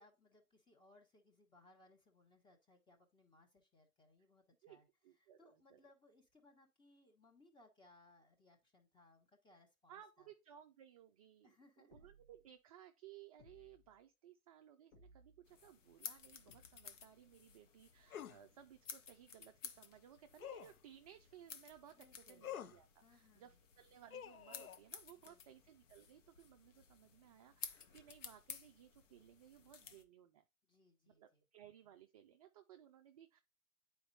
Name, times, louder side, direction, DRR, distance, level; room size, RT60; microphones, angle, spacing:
voice 1, 0.0-4.9 5.2-10.3 11.4-12.1 21.9-22.6 23.0-23.6 25.2-25.6 30.6-31.4, left 2 dB, 10° left, 1.2 m, -68 dB
voice 2, 5.0-5.8 9.9-30.4 31.1-33.4, right 10 dB, 30° right, 0.4 m, -61 dB
sound 1, 11.9-12.5 13.4-14.0 14.9-15.5 16.5-17.1, left 1 dB, 45° left, 1.2 m, -66 dB
sound 2, 15.5-30.0, left 7 dB, 60° left, 1.1 m, -55 dB
sound 3, 18.1-18.4 20.4-20.8 22.4-22.8 24.1-24.8, left 10 dB, 85° left, 0.5 m, -48 dB
9.8 x 4.4 x 2.8 m
figure-of-eight pair, 105°, 42 cm